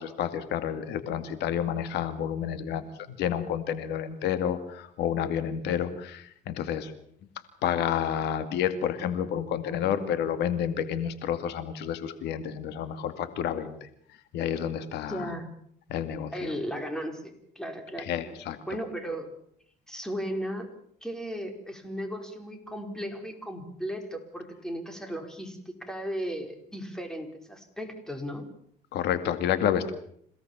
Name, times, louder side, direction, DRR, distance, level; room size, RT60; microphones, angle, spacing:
voice 1, 0.0-6.9 7.6-13.9 14.3-15.3 15.9-16.5 18.0-18.6 28.9-29.9, left 9 dB, 80° left, 10 dB, 2.3 m, -30 dB
voice 2, 15.0-15.5 16.3-18.1 18.7-19.3 19.9-20.7 21.0-28.5, equal, 5° left, 5 dB, 5.0 m, -36 dB
27.5 x 17.5 x 7.4 m, 0.66 s
cardioid pair, 110°, 17 cm